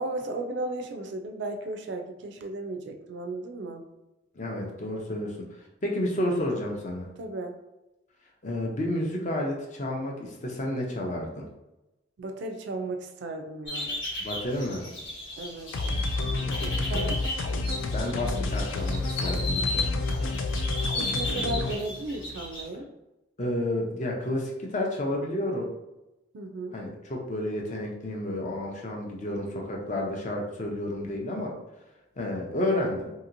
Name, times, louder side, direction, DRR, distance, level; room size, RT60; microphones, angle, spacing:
voice 1, 0.0-3.9 7.2-7.6 12.2-14.0 15.4-15.7 16.9-17.2 21.0-22.9 26.3-26.8, right 2 dB, 65° right, 5 dB, 0.4 m, -35 dB
voice 2, 4.3-5.4 5.8-7.1 8.4-11.5 14.2-14.8 16.4-17.1 17.9-20.0 23.4-25.7 26.7-31.5 32.2-33.1, left 1 dB, 40° left, 0 dB, 0.5 m, -31 dB
sound 1, 13.7-22.7, left 2 dB, 70° left, 1.2 m, -35 dB
sound 2, 15.7-21.7, left 2 dB, 90° left, 0.4 m, -29 dB
2.8 x 2.8 x 2.5 m, 0.97 s
head